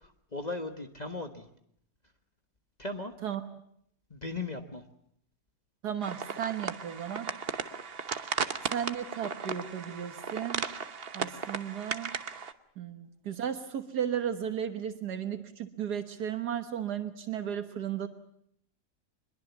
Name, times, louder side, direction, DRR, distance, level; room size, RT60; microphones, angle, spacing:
voice 1, 0.0-1.5 2.8-3.1 4.1-4.8, left 2 dB, 25° left, 5 dB, 1.4 m, -37 dB
voice 2, 5.8-7.3 8.7-10.6 11.1-12.2 12.8-18.1, right 9 dB, 80° right, 8 dB, 1.9 m, -34 dB
sound 1, 6.0-12.5, right 6 dB, 40° right, 1.2 m, -36 dB
24.0 x 22.0 x 7.1 m, 0.71 s
omnidirectional pair, 1.7 m